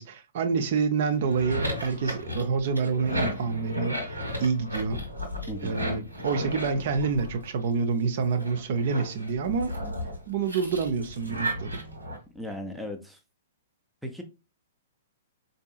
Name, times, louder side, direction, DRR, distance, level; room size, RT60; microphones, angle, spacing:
voice 1, 0.0-5.0 5.6-9.7 10.3-11.8, right 5 dB, 50° right, 0.5 m, -27 dB
sound 1, 1.1-7.8 8.3-12.2, equal, 85° right, 1.4 m, -34 dB
voice 2, 12.3-13.2 14.0-14.2, equal, ahead, 0.5 m, -36 dB
4.4 x 2.7 x 2.4 m
figure-of-eight pair, 110°, 0 cm